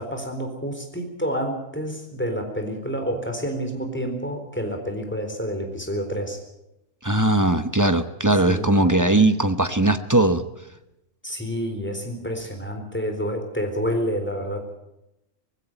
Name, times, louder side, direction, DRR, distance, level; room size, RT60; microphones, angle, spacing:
voice 1, 0.0-6.4 8.4-9.1 11.2-14.7, equal, 10° left, 4 dB, 4.0 m, -29 dB
voice 2, 7.0-10.4, right 2 dB, 15° right, 10 dB, 0.8 m, -19 dB
19.5 x 16.0 x 9.0 m, 0.89 s
omnidirectional pair, 1.4 m